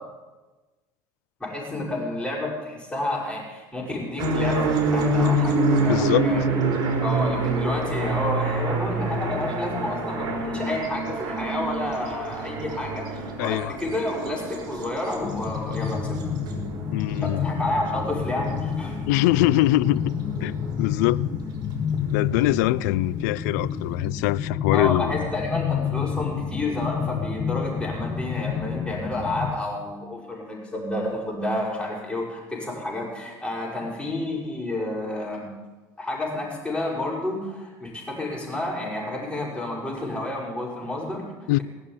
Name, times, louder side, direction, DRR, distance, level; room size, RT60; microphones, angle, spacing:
voice 1, 1.4-6.5 7.0-13.1 13.4-16.2 17.2-19.0 24.7-35.5 36.0-41.6, left 1 dB, 10° left, 6.2 m, -30 dB
sound 1, 4.2-20.9, right 2 dB, 55° right, 4.0 m, -27 dB
voice 2, 5.9-6.3 13.4-13.8 16.9-17.4 19.1-20.1 20.4-21.3 22.1-25.2 41.5-41.6, left 17 dB, 80° left, 0.4 m, -23 dB
sound 2, 15.2-29.5, left 7 dB, 40° left, 2.0 m, -29 dB
18.0 x 7.2 x 9.9 m
supercardioid pair, 85°, 9 cm